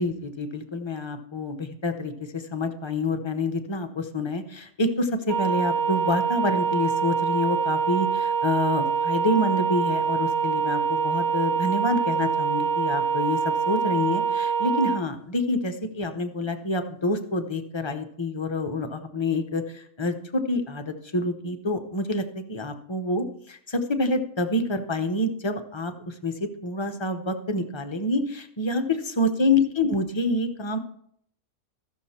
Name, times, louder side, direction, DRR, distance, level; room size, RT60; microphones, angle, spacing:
voice 1, 0.0-30.8, left 2 dB, 30° left, 6 dB, 0.6 m, -27 dB
sound 1, 5.3-15.0, right 6 dB, 75° right, 0.4 m, -25 dB
15.0 x 6.4 x 4.3 m, 0.67 s
omnidirectional pair, 1.5 m